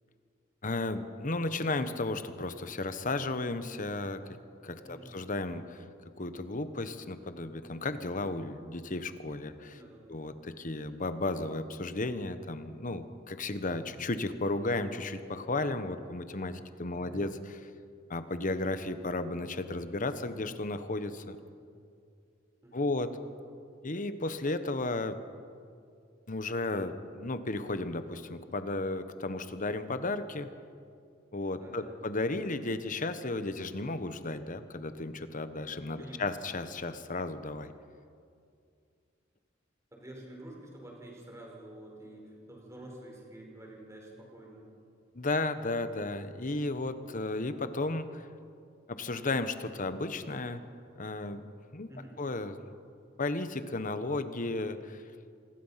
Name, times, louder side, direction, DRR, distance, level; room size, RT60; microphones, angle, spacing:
voice 1, 0.6-4.2 4.6-5.8 6.2-9.8 10.1-17.6 18.1-21.4 22.7-23.1 23.8-25.2 26.3-30.5 31.3-37.7 45.1-48.3 48.9-50.6 51.0-51.9 52.2-52.5 53.2-55.0, left 2 dB, 45° left, 10 dB, 1.2 m, -34 dB
voice 2, 4.8-5.1 9.7-10.2 13.8-14.1 17.0-17.2 22.6-22.9 31.6-32.2 36.0-36.4 39.9-44.6 51.9-52.2, right 1 dB, 15° right, -1 dB, 5.1 m, -49 dB
26.5 x 20.5 x 5.9 m, 2.3 s
head